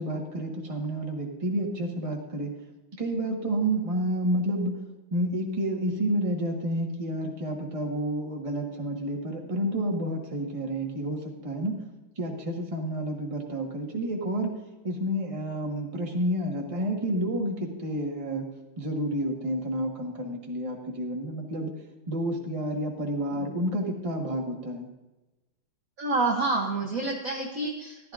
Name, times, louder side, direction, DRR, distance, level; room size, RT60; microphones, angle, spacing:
voice 1, 0.0-2.5 3.0-4.8 5.1-11.8 12.2-14.5 14.8-18.4 18.8-21.7 22.1-24.9, right 1 dB, 20° right, 0 dB, 1.2 m, -30 dB
voice 2, 26.0-28.1, right 3 dB, 55° right, 0 dB, 1.1 m, -28 dB
14.5 x 11.5 x 2.5 m, 1.1 s
omnidirectional pair, 2.2 m